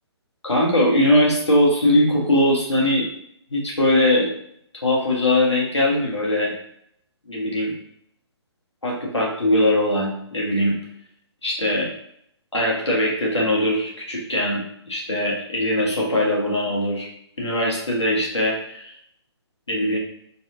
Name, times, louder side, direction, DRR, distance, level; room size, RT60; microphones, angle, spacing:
voice 1, 0.4-3.1 3.5-4.3 4.8-6.5 7.3-7.7 8.8-10.7 11.4-11.9 12.5-14.6 14.9-17.1 17.4-19.0 19.7-20.0, left 1 dB, 80° left, -3 dB, 1.3 m, -21 dB
4.0 x 2.3 x 2.7 m, 0.70 s
figure-of-eight pair, 135°, 15 cm